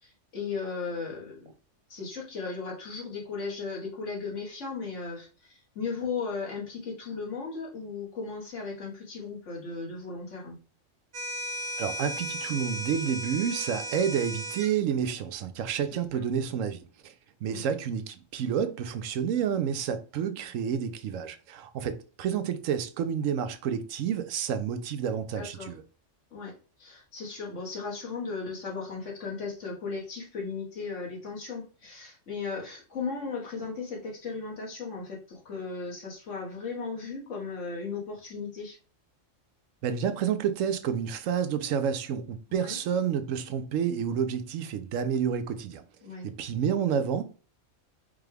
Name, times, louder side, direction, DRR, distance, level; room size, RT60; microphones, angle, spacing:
voice 1, 0.0-1.5 1.9-10.6 17.5-17.6 25.4-25.7 26.3-38.8 42.5-42.8 46.0-46.3, left 4 dB, 70° left, 1.7 m, -36 dB
sound 1, 11.1-14.7, equal, 55° right, 0.4 m, -35 dB
voice 2, 11.8-17.1 17.4-25.8 39.8-45.8 46.2-47.2, right 8 dB, 90° right, 1.0 m, -29 dB
4.9 x 2.3 x 3.3 m
omnidirectional pair, 1.3 m